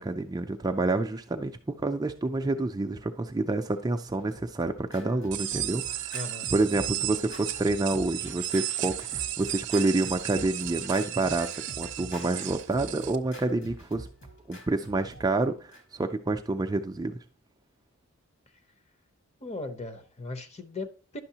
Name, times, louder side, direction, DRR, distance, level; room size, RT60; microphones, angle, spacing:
voice 1, 0.0-6.2 6.5-11.5 11.8-14.1 14.5-17.2, right 2 dB, 15° right, 0.3 m, -28 dB
Scratching (performance technique), 4.0-16.1, right 1 dB, 55° left, 1.7 m, -45 dB
sound 1, 5.3-13.2, right 13 dB, 55° right, 0.7 m, -34 dB
voice 2, 6.1-6.5 19.4-21.2, left 2 dB, 30° left, 0.7 m, -38 dB
10.5 x 6.2 x 2.8 m
head